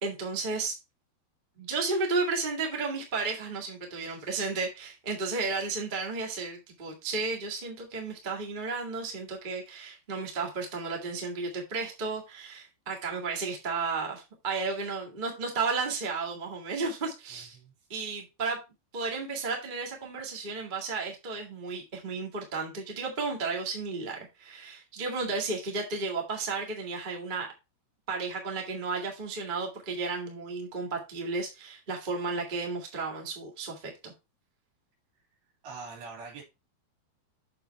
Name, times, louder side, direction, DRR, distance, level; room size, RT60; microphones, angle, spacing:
voice 1, 0.0-0.8 1.6-17.6 17.9-18.6 18.9-27.5 28.1-34.1, right 4 dB, 40° right, 0.7 m, -33 dB
voice 2, 17.3-17.7 35.6-36.4, right 4 dB, 70° right, 4.5 m, -43 dB
7.0 x 6.8 x 3.3 m
omnidirectional pair, 4.6 m